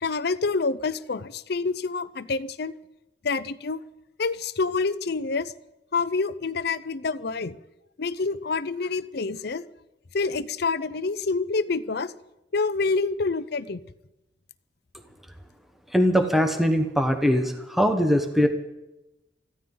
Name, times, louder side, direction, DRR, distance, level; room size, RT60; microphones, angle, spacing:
voice 1, 0.0-2.7 3.2-3.8 4.2-5.5 5.9-7.6 8.0-9.7 10.1-12.1 12.5-13.8, left 4 dB, 55° left, 15 dB, 0.6 m, -27 dB
voice 2, 15.9-18.5, equal, ahead, 5 dB, 1.1 m, -21 dB
24.5 x 15.0 x 3.9 m, 0.97 s
head